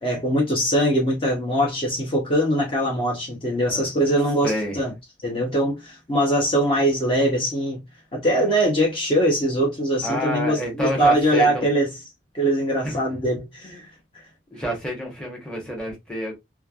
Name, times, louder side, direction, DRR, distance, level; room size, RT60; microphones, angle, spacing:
voice 1, 0.0-4.9 5.2-7.8 8.1-11.9 12.3-14.2, right 1 dB, 30° left, 0.8 m, -22 dB
voice 2, 4.4-4.8 10.0-11.6 12.8-13.0 14.5-16.3, equal, 5° left, 1.0 m, -28 dB
3.2 x 2.2 x 2.4 m
head